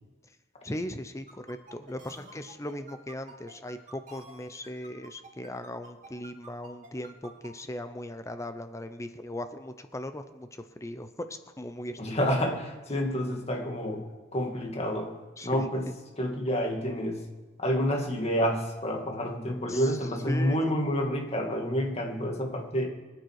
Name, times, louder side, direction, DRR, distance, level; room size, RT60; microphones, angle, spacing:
voice 1, 0.6-12.2 15.4-15.7 19.7-20.0 20.3-20.7, left 1 dB, 15° left, 9 dB, 0.8 m, -38 dB
sound 1, 1.3-7.5, right 3 dB, 45° right, 3.2 m, -49 dB
voice 2, 12.0-14.1 14.3-15.1 15.4-15.9 16.2-17.2 17.6-22.9, equal, 35° left, 2 dB, 2.4 m, -29 dB
23.5 x 9.3 x 4.9 m, 1.3 s
head